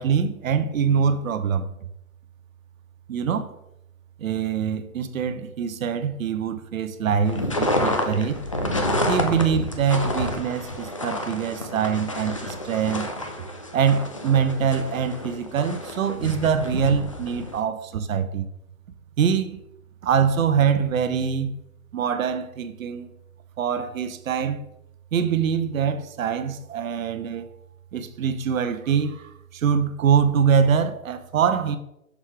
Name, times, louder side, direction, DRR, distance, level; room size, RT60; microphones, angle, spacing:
voice 1, 0.0-1.7 3.1-3.5 4.2-8.4 9.1-13.1 13.7-18.5 19.2-19.6 20.0-21.5 21.9-23.1 23.6-24.6 25.1-27.5 27.9-31.8, right 7 dB, 70° right, 0.9 m, -24 dB
sound 1, 7.2-17.6, left 1 dB, 25° left, 0.3 m, -29 dB
6.3 x 6.3 x 3.8 m
hypercardioid pair, 155°, 42 cm